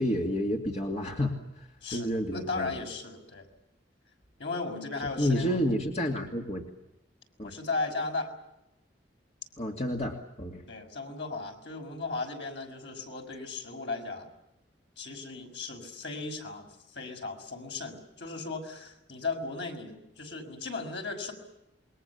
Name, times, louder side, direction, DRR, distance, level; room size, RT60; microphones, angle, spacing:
voice 1, 0.0-1.3 1.9-2.7 5.2-6.6 7.4-7.5 9.6-10.6, equal, 35° left, 1 dB, 2.5 m, -29 dB
voice 2, 1.8-3.5 4.4-5.6 7.4-8.3 10.7-14.3 15.0-21.3, left 3 dB, 75° left, 3 dB, 6.0 m, -36 dB
28.0 x 23.0 x 7.2 m, 0.90 s
head